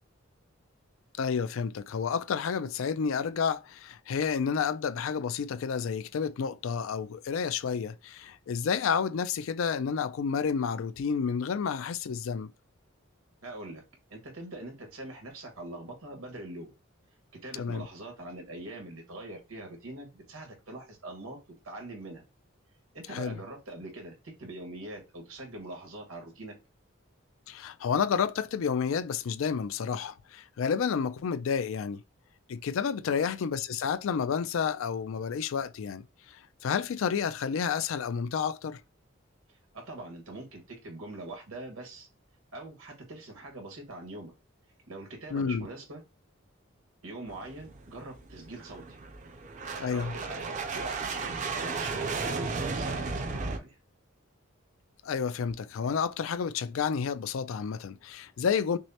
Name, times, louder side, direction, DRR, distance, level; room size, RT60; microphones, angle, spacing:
voice 1, 1.2-12.5 17.6-17.9 23.1-23.4 27.5-32.0 32.5-36.0 36.3-38.8 45.3-45.7 49.8-50.1 55.0-58.8, left 6 dB, 70° left, 0.4 m, -30 dB
voice 2, 13.4-13.8 14.1-16.7 17.4-21.4 21.6-22.2 22.9-26.5 33.0-33.3 39.7-42.1 42.5-44.3 44.9-46.0 47.0-49.0 49.9-53.8, right 2 dB, 90° right, 1.5 m, -43 dB
sound 1, 47.3-53.6, right 4 dB, 35° right, 0.4 m, -34 dB
6.1 x 2.1 x 2.8 m
head